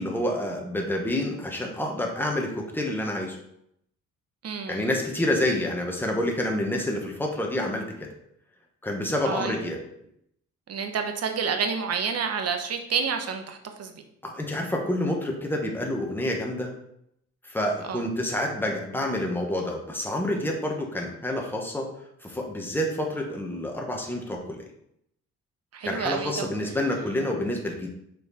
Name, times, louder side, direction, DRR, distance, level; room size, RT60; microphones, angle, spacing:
voice 1, 0.0-3.4 4.7-8.1 8.8-9.8 14.2-16.7 17.4-21.9 22.2-24.6 25.8-27.9, left 1 dB, 5° left, 0 dB, 1.6 m, -28 dB
voice 2, 4.4-4.9 9.2-9.6 10.7-14.0 17.9-18.0 25.7-26.5, right 6 dB, 55° right, 5 dB, 1.1 m, -29 dB
6.6 x 4.5 x 4.2 m, 0.74 s
cardioid pair, 90°, 30 cm